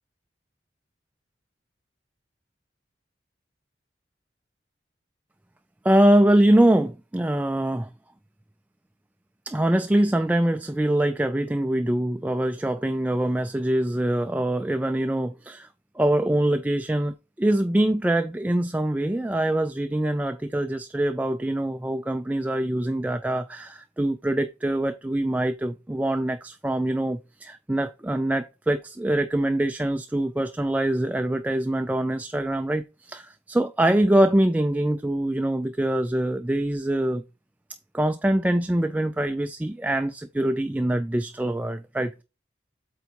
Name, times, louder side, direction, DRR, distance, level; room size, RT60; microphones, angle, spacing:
voice 1, 5.8-7.9 9.5-15.7 16.0-37.2 37.9-42.2, right 1 dB, 10° right, 0.3 m, -24 dB
8.1 x 3.9 x 4.5 m
head